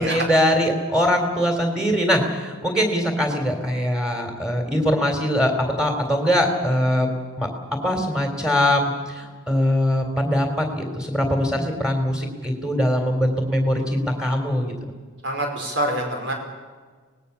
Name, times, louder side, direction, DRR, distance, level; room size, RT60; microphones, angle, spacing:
voice 1, 0.0-5.5 5.8-7.1 7.4-7.5 7.8-14.7, equal, 5° right, 3 dB, 3.6 m, -22 dB
voice 2, 15.2-16.3, right 1 dB, 55° right, 2 dB, 5.0 m, -25 dB
24.5 x 19.5 x 7.0 m, 1.5 s
head